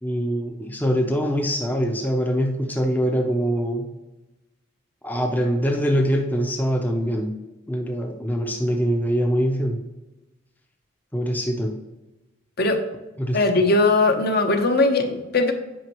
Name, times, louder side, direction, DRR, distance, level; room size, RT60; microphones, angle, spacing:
voice 1, 0.0-3.9 5.0-7.3 7.7-9.8 11.1-11.8 13.2-13.4, equal, 10° left, 2 dB, 0.6 m, -23 dB
voice 2, 13.3-15.5, left 2 dB, 50° left, 6 dB, 0.8 m, -19 dB
9.0 x 5.3 x 3.0 m, 1.0 s
head